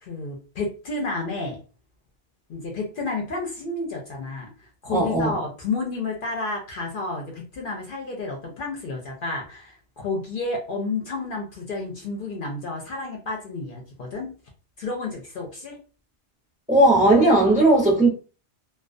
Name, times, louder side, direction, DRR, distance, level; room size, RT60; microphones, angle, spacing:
voice 1, 0.0-1.6 2.5-14.3 14.8-15.8, left 3 dB, 55° left, 0.7 m, -31 dB
voice 2, 4.9-5.3 16.7-18.1, right 1 dB, 10° right, 0.5 m, -17 dB
2.3 x 2.2 x 2.4 m
omnidirectional pair, 1.2 m